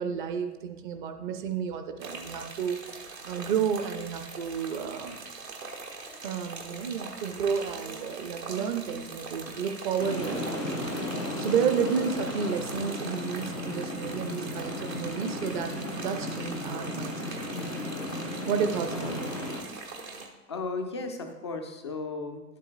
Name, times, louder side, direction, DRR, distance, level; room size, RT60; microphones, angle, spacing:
voice 1, 0.0-5.2 6.2-10.5 11.4-17.2 18.5-19.3, right 7 dB, 30° right, 6 dB, 0.5 m, -31 dB
sound 1, 2.0-20.3, right 3 dB, 85° right, 1.5 m, -42 dB
sound 2, 10.0-19.6, left 1 dB, 90° left, 1.8 m, -35 dB
voice 2, 18.9-19.2 20.5-22.4, left 3 dB, 20° left, 5 dB, 0.3 m, -35 dB
11.5 x 8.2 x 2.5 m, 1.2 s
figure-of-eight pair, 95°, 48 cm